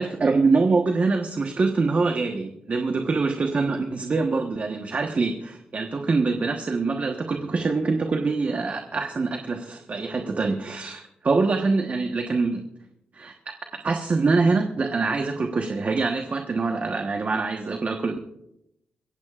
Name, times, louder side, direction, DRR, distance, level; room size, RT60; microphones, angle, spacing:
voice 1, 0.0-12.7 13.1-13.3 13.8-18.2, right 3 dB, 45° right, 4 dB, 1.2 m, -24 dB
25.0 x 15.5 x 2.5 m, 0.83 s
cardioid pair, 80°, 3 cm